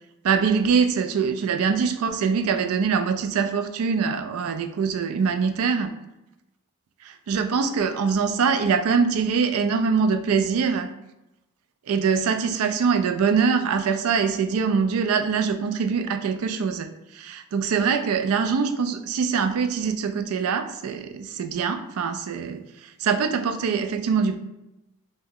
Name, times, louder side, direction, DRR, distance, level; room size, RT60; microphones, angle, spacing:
voice 1, 0.2-5.9 7.0-10.9 11.9-16.9 17.1-22.6 23.0-24.3, right 6 dB, 65° right, 7 dB, 0.3 m, -23 dB
2.9 x 2.1 x 3.6 m, 0.92 s
head